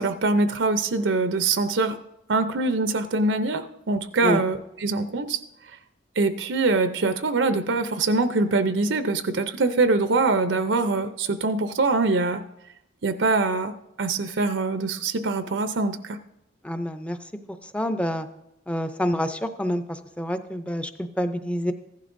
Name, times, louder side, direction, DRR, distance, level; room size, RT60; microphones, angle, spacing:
voice 1, 0.0-2.0 2.3-5.4 6.2-12.4 13.0-13.7 14.0-16.2, right 3 dB, 85° right, 10 dB, 0.6 m, -23 dB
voice 2, 16.6-17.2 17.6-18.3 18.7-21.7, equal, 5° left, 9 dB, 0.5 m, -27 dB
15.0 x 11.5 x 2.6 m, 0.85 s
head